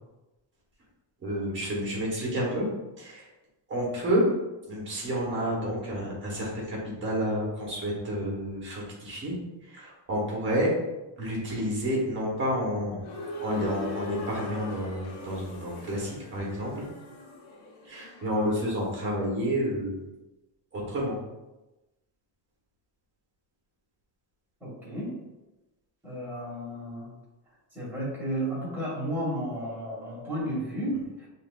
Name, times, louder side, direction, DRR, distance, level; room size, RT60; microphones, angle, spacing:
voice 1, 1.2-2.6 3.0-3.3 3.7-4.2 4.7-9.4 9.7-10.7 11.2-13.1 13.4-16.9 17.9-20.0 20.7-21.2, equal, 25° right, -4 dB, 1.1 m, -30 dB
sound 1, 13.0-18.9, left 2 dB, 70° left, 0.9 m, -41 dB
voice 2, 24.6-25.1 26.0-27.1 27.7-31.3, right 1 dB, 5° right, -8 dB, 1.4 m, -33 dB
5.7 x 2.6 x 2.3 m, 1.0 s
cardioid pair, 180°, 46 cm